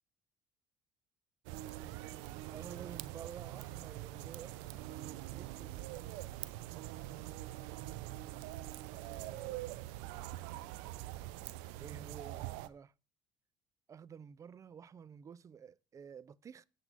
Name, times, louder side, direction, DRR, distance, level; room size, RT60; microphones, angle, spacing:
sound 1, 1.5-12.7, right 15 dB, 85° right, 0.5 m, -44 dB
voice 1, 1.8-2.2 2.5-4.6 5.3-6.1 8.9-9.8 11.8-12.9 13.9-16.6, right 7 dB, 30° right, 0.4 m, -51 dB
8.1 x 7.4 x 3.9 m
supercardioid pair, 90°, 10 cm